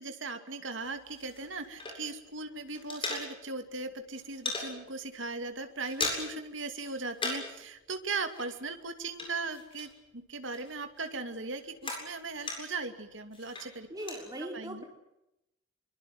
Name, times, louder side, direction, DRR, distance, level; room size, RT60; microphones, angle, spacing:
voice 1, 0.0-13.9 14.4-14.9, right 3 dB, 70° right, 7 dB, 2.6 m, -38 dB
sound 1, 0.8-2.3 2.6-3.7 4.0-4.7 5.1-5.3 5.6-6.5 6.7-7.6 7.8-10.2 10.5-12.9 13.3-14.2, left 3 dB, 25° left, 7.7 m, -38 dB
voice 2, 13.9-14.9, right 1 dB, 20° right, 2 dB, 4.6 m, -39 dB
24.0 x 24.0 x 7.9 m, 0.88 s
head